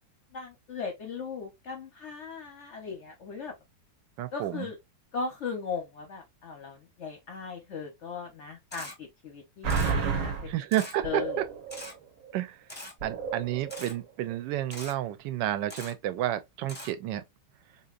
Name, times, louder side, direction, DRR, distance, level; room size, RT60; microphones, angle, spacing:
voice 1, 0.3-3.5 4.3-4.8 5.1-10.5 11.0-11.4, left 5 dB, 55° left, 0.8 m, -38 dB
voice 2, 4.2-4.7 10.5-11.2 12.3-12.6 13.0-17.2, right 13 dB, 85° right, 1.2 m, -31 dB
Camera, 8.7-8.9 9.7-9.9 10.7-10.9 11.7-11.9 12.7-12.9 13.7-13.9 14.7-14.9 15.7-15.9 16.7-16.9, left 1 dB, 10° left, 0.6 m, -42 dB
sound 1, 9.6-10.5 11.0-11.9 12.2-12.4 13.0-13.9 14.3-14.4, right 5 dB, 60° right, 0.9 m, -31 dB
3.9 x 2.8 x 2.4 m
omnidirectional pair, 1.9 m